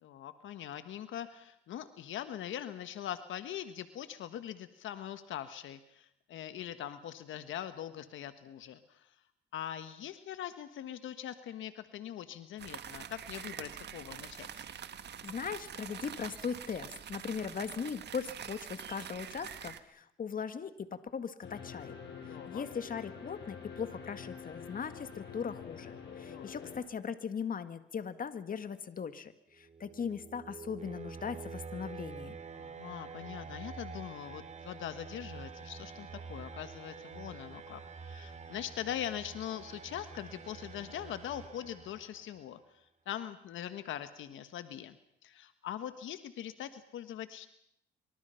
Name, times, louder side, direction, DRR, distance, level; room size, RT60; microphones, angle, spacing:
voice 1, 0.0-9.1 9.5-14.6 22.3-22.6 26.2-26.7 32.5-45.0 45.2-47.5, left 11 dB, 80° left, 11 dB, 1.5 m, -42 dB
sound 1, 12.6-19.8, right 9 dB, 60° right, 1.6 m, -45 dB
voice 2, 15.2-21.9 22.2-32.4, left 6 dB, 45° left, 10 dB, 1.9 m, -39 dB
sound 2, 21.4-26.8, left 6 dB, 60° left, 7.1 m, -46 dB
sound 3, 29.6-42.4, right 5 dB, 35° right, 2.9 m, -47 dB
25.0 x 25.0 x 5.8 m, 0.74 s
cardioid pair, 90°, 20 cm